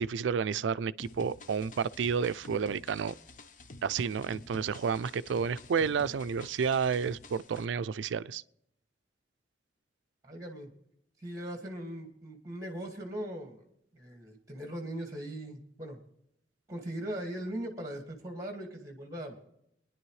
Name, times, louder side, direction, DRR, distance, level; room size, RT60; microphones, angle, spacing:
voice 1, 0.0-3.1 3.8-8.4, right 6 dB, 90° right, 0.4 m, -30 dB
sound 1, 1.0-7.7, left 2 dB, 45° left, 0.7 m, -50 dB
voice 2, 10.2-10.7 11.2-13.6 13.9-16.0 16.7-19.4, right 1 dB, 20° right, 1.9 m, -39 dB
24.0 x 10.5 x 3.2 m
head